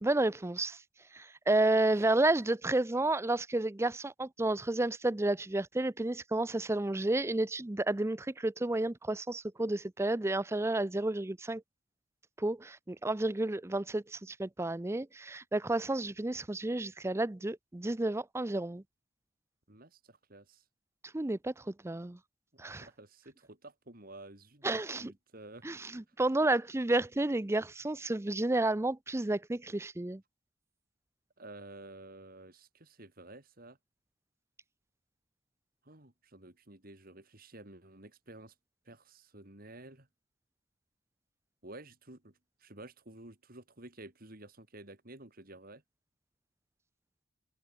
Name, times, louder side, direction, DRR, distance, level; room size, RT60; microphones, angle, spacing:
voice 1, 0.0-0.8 1.1-11.6 12.4-18.8 21.1-22.2 22.6-22.9 24.6-25.1 25.6-30.2, right 2 dB, 15° right, 0.5 m, -31 dB
voice 2, 19.7-20.6 22.5-25.9 31.4-33.8 35.9-38.5 38.9-40.1 41.6-42.3 42.6-45.8, right 2 dB, 50° right, 3.8 m, -52 dB
head